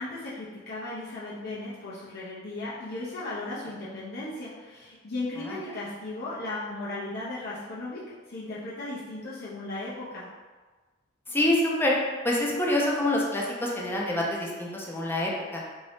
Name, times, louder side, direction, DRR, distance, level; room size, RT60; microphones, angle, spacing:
voice 1, 0.0-10.3, left 2 dB, 50° left, -8 dB, 0.6 m, -36 dB
voice 2, 11.3-11.9 12.2-15.6, left 1 dB, 10° left, -3 dB, 0.6 m, -26 dB
3.6 x 2.6 x 3.4 m, 1.3 s
head